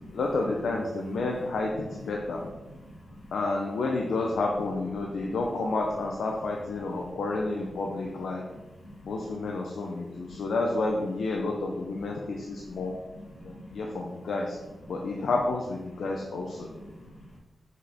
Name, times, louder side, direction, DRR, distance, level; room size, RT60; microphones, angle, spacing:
voice 1, 0.1-2.5 3.3-8.4 9.0-12.9 13.4-14.6 14.9-16.7, left 3 dB, 85° left, 0 dB, 0.7 m, -30 dB
voice 2, 8.8-9.2 10.3-10.4 12.2-12.3 12.5-14.0 16.0-16.1 16.7-17.4, equal, 70° left, -3 dB, 1.9 m, -47 dB
6.3 x 5.4 x 3.5 m, 1.2 s
wide cardioid pair, 140°, 0 cm